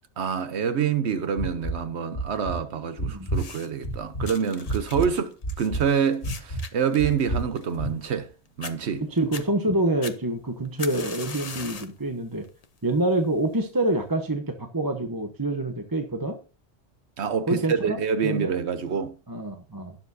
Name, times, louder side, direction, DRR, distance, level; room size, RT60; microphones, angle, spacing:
voice 1, 0.2-8.3 8.6-9.0 17.2-19.1, right 7 dB, 80° right, 1.2 m, -26 dB
sound 1, 1.4-1.8 2.1-2.6 3.0-3.5 3.8-4.3 4.7-5.1 5.4-5.9 6.2-6.6 7.0-7.5 7.8-7.9, right 2 dB, 60° left, 2.9 m, -29 dB
sound 2, 3.3-3.9 4.2-8.3 8.6-8.7 9.2-9.5 10.0-12.0 12.4-12.8 13.6-13.7, left 5 dB, 40° left, 0.8 m, -40 dB
voice 2, 9.1-12.5 12.8-16.4 17.5-18.0 18.2-18.5 18.9-19.0 19.3-20.0, right 2 dB, 20° right, 1.0 m, -26 dB
18.0 x 7.2 x 2.8 m
omnidirectional pair, 1.1 m